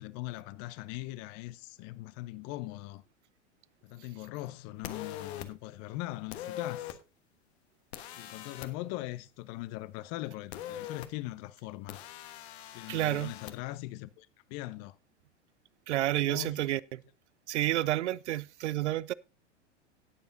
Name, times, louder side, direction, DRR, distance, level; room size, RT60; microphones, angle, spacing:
voice 1, 0.0-3.0 3.8-7.0 8.2-12.0 12.7-15.0 16.2-16.7, left 17 dB, 45° left, 0.8 m, -41 dB
sound 1, 4.8-5.5 6.3-7.0 7.9-8.7 10.5-11.1 11.9-13.5, left 11 dB, 60° left, 1.3 m, -42 dB
voice 2, 12.9-13.3 15.9-17.0 17.5-19.1, right 14 dB, 75° right, 0.5 m, -30 dB
18.5 x 7.0 x 2.6 m
hypercardioid pair, 90°, 36 cm